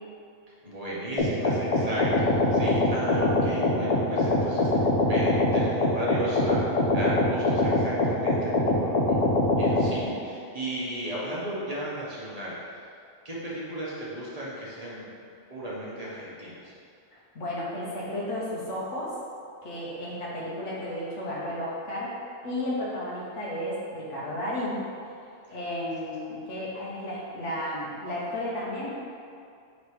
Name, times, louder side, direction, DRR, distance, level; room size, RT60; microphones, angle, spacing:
voice 1, 0.6-12.8 13.2-15.1 15.5-16.7, right 1 dB, 30° right, -7 dB, 1.3 m, -35 dB
sound 1, 1.2-9.9, left 2 dB, 45° left, 0.5 m, -23 dB
voice 2, 17.1-19.1 19.6-22.2 22.4-24.8 25.5-28.9, left 1 dB, 70° left, -6 dB, 1.5 m, -33 dB
5.1 x 4.1 x 4.8 m, 2.4 s
omnidirectional pair, 1.3 m